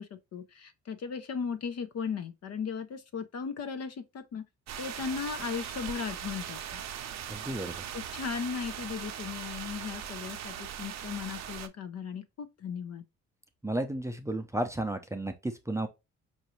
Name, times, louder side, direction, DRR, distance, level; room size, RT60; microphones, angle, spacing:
voice 1, 0.0-4.4 4.8-6.8 7.9-13.0, left 6 dB, 55° left, 0.7 m, -37 dB
sound 1, 4.7-11.7, right 9 dB, 60° right, 0.6 m, -40 dB
voice 2, 7.3-7.7 13.6-15.9, right 1 dB, 10° right, 0.5 m, -33 dB
4.9 x 2.7 x 3.0 m
cardioid pair, 90°, 30 cm